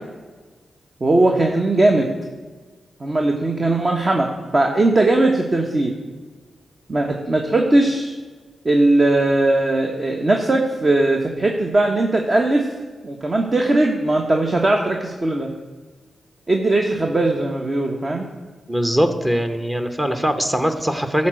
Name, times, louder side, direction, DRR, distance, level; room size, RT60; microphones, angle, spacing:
voice 1, 1.0-2.1 3.0-5.9 6.9-8.1 8.6-12.7 13.0-15.5 16.5-18.3, right 2 dB, 40° right, 2 dB, 1.1 m, -19 dB
voice 2, 18.7-21.3, equal, 15° right, 8 dB, 0.9 m, -21 dB
11.5 x 4.3 x 7.6 m, 1.3 s
cardioid pair, 65°, 0 cm